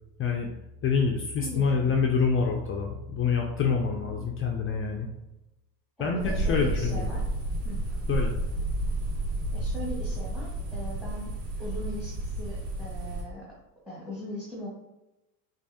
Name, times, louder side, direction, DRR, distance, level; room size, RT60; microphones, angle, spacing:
voice 1, 0.8-5.1 6.0-7.1 8.1-8.3, left 5 dB, 30° left, 1 dB, 0.4 m, -26 dB
voice 2, 1.4-2.0 4.0-4.2 6.0-7.3 7.6-7.8 9.5-11.3 11.6-13.5 13.9-14.7, equal, ahead, -5 dB, 1.1 m, -39 dB
sound 1, 6.2-13.2, right 1 dB, 80° right, 1.4 m, -31 dB
4.5 x 2.6 x 2.7 m, 0.95 s
hypercardioid pair, 85°, 49 cm